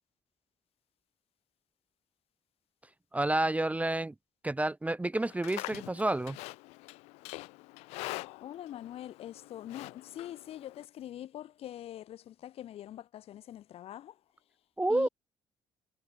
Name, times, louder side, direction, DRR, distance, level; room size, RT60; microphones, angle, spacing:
voice 1, 3.1-4.1 4.4-6.4 14.8-15.1, right 2 dB, 15° right, 0.6 m, -29 dB
Livestock farm animals working animals, 5.2-10.9, left 24 dB, 85° left, 3.5 m, -44 dB
voice 2, 8.1-14.2 14.9-15.1, left 12 dB, 65° left, 1.9 m, -44 dB
hypercardioid pair, 60°, 11 cm